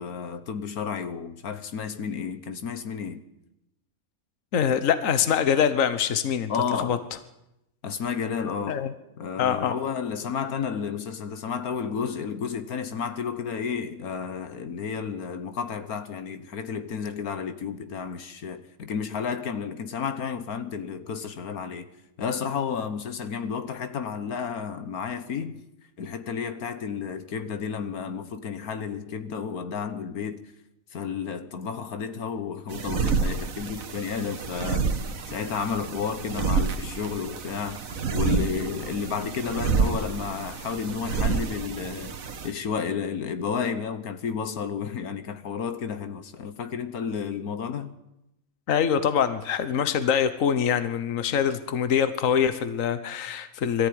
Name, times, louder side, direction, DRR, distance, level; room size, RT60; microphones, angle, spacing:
voice 1, 0.0-3.2 6.5-7.0 7.8-8.8 9.2-21.9 22.2-25.6 26.0-30.5 30.9-34.9 35.3-48.0, left 6 dB, 80° left, 1.7 m, -32 dB
voice 2, 4.5-6.5 6.8-7.0 8.7-8.9 9.4-9.7 48.7-53.9, left 8 dB, 65° left, 1.5 m, -24 dB
sound 1, 32.7-42.5, right 5 dB, 70° right, 1.7 m, -29 dB
22.0 x 14.0 x 9.5 m
omnidirectional pair, 1.5 m